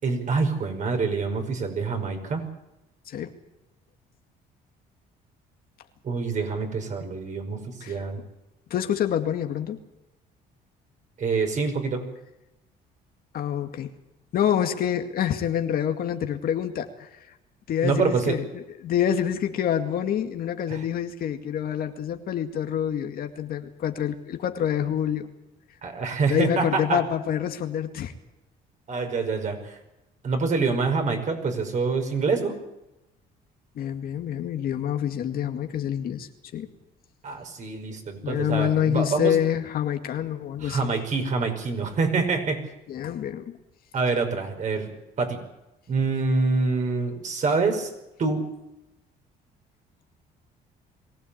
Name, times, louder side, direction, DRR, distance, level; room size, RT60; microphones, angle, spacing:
voice 1, 0.0-2.4 6.0-7.6 7.9-8.2 11.2-12.0 17.8-18.4 20.7-20.8 25.8-27.0 28.9-29.8 30.2-32.6 37.2-39.4 40.6-42.6 43.9-44.9 45.2-45.4 45.9-47.9 48.2-48.4, right 4 dB, 45° right, 4 dB, 5.5 m, -26 dB
voice 2, 8.7-9.8 13.3-13.9 14.3-17.1 17.7-25.3 26.3-28.1 33.8-36.3 36.5-36.7 38.2-40.9 42.9-43.6, left 9 dB, 60° left, 6 dB, 2.1 m, -27 dB
22.5 x 16.5 x 8.7 m, 0.94 s
cardioid pair, 110°, 17 cm